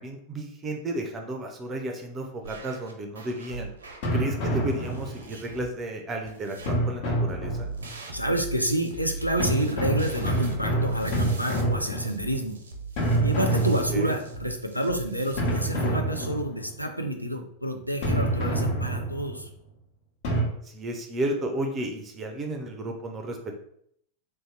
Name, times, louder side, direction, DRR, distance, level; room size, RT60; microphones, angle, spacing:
voice 1, 0.0-3.7 4.1-7.7 13.9-14.1 20.6-23.5, right 1 dB, 25° right, 4 dB, 0.5 m, -33 dB
sound 1, 2.4-4.1 4.5-5.7 6.2-6.9 7.3-15.6, right 3 dB, 75° right, 0.5 m, -39 dB
sound 2, 4.0-5.4 6.7-8.0 9.4-12.5 13.0-14.5 15.4-16.8 18.0-19.4 20.2-20.4, right 1 dB, 45° left, 1.0 m, -27 dB
voice 2, 8.1-12.6 13.2-19.5, right 1 dB, 90° left, 4 dB, 0.5 m, -29 dB
3.3 x 2.7 x 3.2 m, 0.70 s
figure-of-eight pair, 90°, 0 cm